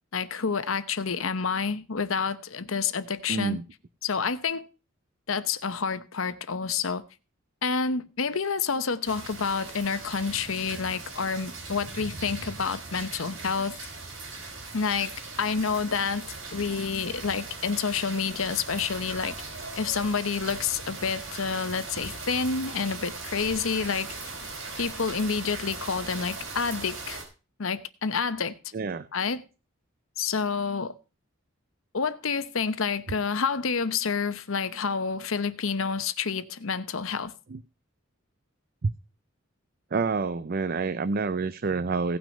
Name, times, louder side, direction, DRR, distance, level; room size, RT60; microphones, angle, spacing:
voice 1, 0.1-3.6 4.0-4.6 5.3-7.0 7.6-13.8 14.7-16.3 16.5-19.4 19.8-24.1 24.8-27.2 27.6-28.5 29.1-29.4 30.2-30.9 31.9-37.3, left 5 dB, 80° left, 0.9 m, -28 dB
voice 2, 3.3-3.6 28.7-29.1 37.5-37.6 38.8-38.9 39.9-42.2, right 4 dB, 45° right, 0.5 m, -28 dB
sound 1, 9.1-27.2, right 3 dB, 70° right, 4.9 m, -39 dB
17.0 x 6.1 x 5.3 m
head